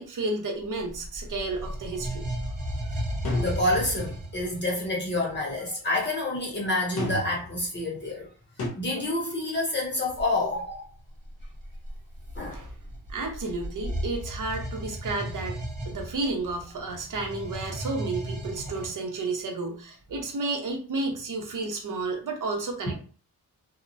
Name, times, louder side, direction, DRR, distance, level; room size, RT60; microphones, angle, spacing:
voice 1, 0.0-2.3 12.5-12.7 13.1-15.6 15.9-22.9, right 3 dB, 60° right, 2 dB, 0.8 m, -32 dB
sound 1, 0.6-4.7 10.1-10.3 11.1-18.9, right 1 dB, 20° right, 0.9 m, -35 dB
sound 2, 3.2-4.2 7.0-7.6 8.6-8.7, left 1 dB, 90° left, 0.9 m, -32 dB
voice 2, 3.4-8.3 8.8-10.9 12.4-12.6 22.9-23.0, left 2 dB, 30° left, -3 dB, 0.7 m, -28 dB
2.9 x 2.0 x 2.5 m, 0.40 s
wide cardioid pair, 135°, 36 cm